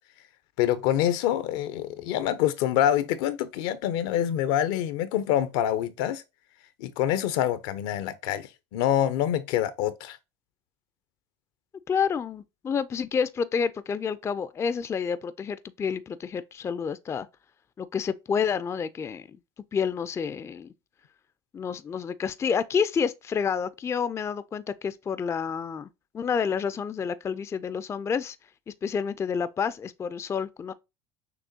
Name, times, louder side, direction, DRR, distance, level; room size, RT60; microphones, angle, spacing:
voice 1, 0.6-6.2 6.8-10.2, left 11 dB, 75° left, 0.7 m, -26 dB
voice 2, 11.9-17.3 17.8-19.3 19.7-20.7 21.5-25.9 26.1-28.4 28.7-30.7, left 6 dB, 20° left, 0.3 m, -29 dB
6.1 x 3.0 x 2.7 m
supercardioid pair, 110°, 13 cm